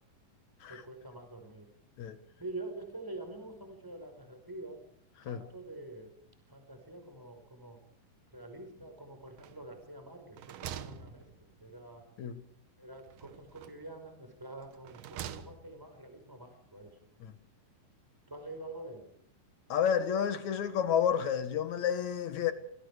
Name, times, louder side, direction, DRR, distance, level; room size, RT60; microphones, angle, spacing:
voice 1, 0.7-1.7 2.4-4.8 5.2-6.2 6.5-7.8 8.3-12.0 12.8-17.0 18.3-19.1, right 2 dB, 5° right, 5.2 m, -46 dB
sound 1, 9.4-9.9 10.2-11.8 13.1-13.9 14.6-15.9, right 9 dB, 70° right, 2.6 m, -45 dB
voice 2, 19.7-22.5, left 8 dB, 60° left, 2.6 m, -30 dB
26.0 x 22.0 x 5.0 m
omnidirectional pair, 4.1 m